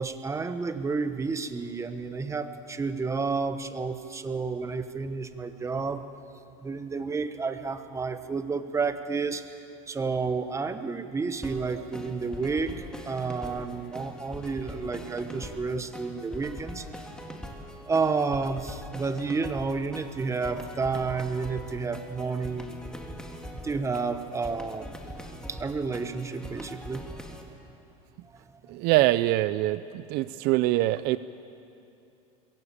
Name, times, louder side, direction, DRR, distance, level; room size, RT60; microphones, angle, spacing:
voice 1, 0.0-6.0 6.6-9.4 9.9-12.8 13.0-16.9 17.9-22.7 23.6-25.0 25.5-27.1, right 4 dB, 15° right, 10 dB, 1.1 m, -30 dB
sound 1, 11.4-27.4, equal, 5° left, 2.2 m, -42 dB
voice 2, 28.7-31.2, right 16 dB, 60° right, 15 dB, 0.5 m, -24 dB
21.5 x 15.5 x 8.7 m, 2.7 s
supercardioid pair, 120°, 18 cm